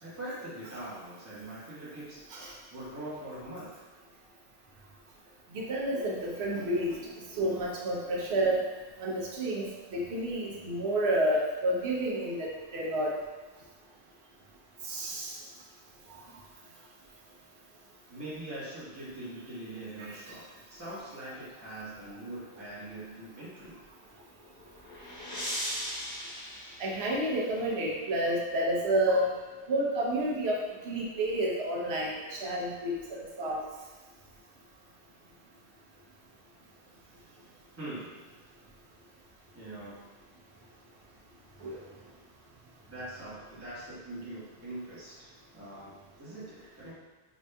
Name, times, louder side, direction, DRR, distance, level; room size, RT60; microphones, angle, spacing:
voice 1, 0.0-3.8 18.1-23.8 37.7-38.3 39.5-40.1 42.9-46.9, right 1 dB, 15° right, -10 dB, 1.1 m, -43 dB
voice 2, 5.5-7.0 7.3-8.7 9.0-13.1 14.9-15.3 20.0-20.1 26.8-29.3 29.7-30.6 30.8-33.6 41.6-41.8, right 1 dB, 75° right, -2 dB, 1.0 m, -30 dB
sound 1, 24.3-27.6, equal, 25° left, 0.8 m, -39 dB
5.1 x 2.6 x 2.2 m, 1.3 s
omnidirectional pair, 1.1 m